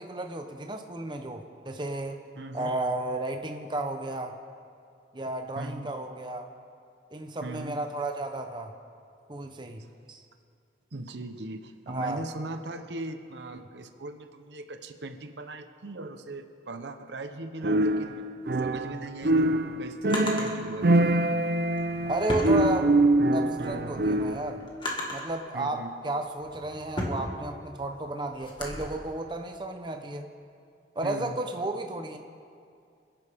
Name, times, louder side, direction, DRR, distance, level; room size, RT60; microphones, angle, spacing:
voice 1, 0.0-2.2 2.5-4.4 5.1-6.5 7.1-8.7 9.3-10.2 11.9-12.2 13.5-13.6 22.0-23.0 23.3-24.6 25.1-30.3 31.0-32.2, right 2 dB, 25° right, 5 dB, 0.8 m, -33 dB
voice 2, 2.4-2.8 5.6-5.9 7.4-7.8 9.8-9.9 10.9-18.2 18.6-20.9 25.5-25.9 31.0-31.4, right 2 dB, 80° right, 7 dB, 0.9 m, -39 dB
sound 1, 17.6-19.0 19.2-24.5, right 1 dB, 60° right, 0.6 m, -24 dB
Drawer open or close, 18.9-20.5 21.6-23.2 23.7-25.4 26.0-28.8, left 1 dB, 25° left, 1.8 m, -36 dB
27.5 x 10.5 x 3.6 m, 2.3 s
head